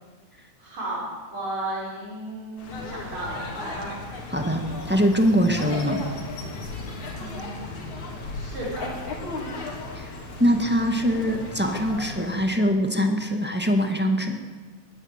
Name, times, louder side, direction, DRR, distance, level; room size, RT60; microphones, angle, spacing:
voice 1, 0.6-1.0 1.3-3.9 7.1-7.7 8.3-8.9, right 1 dB, 65° right, -5 dB, 7.0 m, -34 dB
sound 1, 2.6-12.4, left 2 dB, 80° left, 4.7 m, -35 dB
voice 2, 4.3-6.0 9.9-10.1 10.4-14.4, equal, 5° right, 3 dB, 1.1 m, -23 dB
21.5 x 16.0 x 9.0 m, 1.4 s
omnidirectional pair, 3.3 m